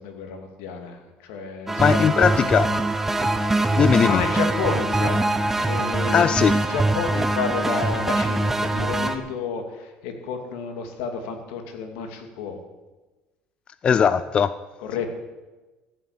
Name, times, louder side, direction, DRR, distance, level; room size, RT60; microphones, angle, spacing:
voice 1, 0.0-2.6 4.0-5.2 5.6-12.6 14.8-15.1, left 5 dB, 85° left, 4 dB, 2.5 m, -31 dB
sound 1, 1.7-9.2, right 2 dB, 10° right, 1.0 m, -23 dB
voice 2, 1.8-2.7 3.8-4.2 6.1-6.6 13.8-14.6, left 7 dB, 30° left, 14 dB, 0.5 m, -19 dB
15.0 x 7.6 x 8.8 m, 1.2 s
cardioid pair, 130°, 3 cm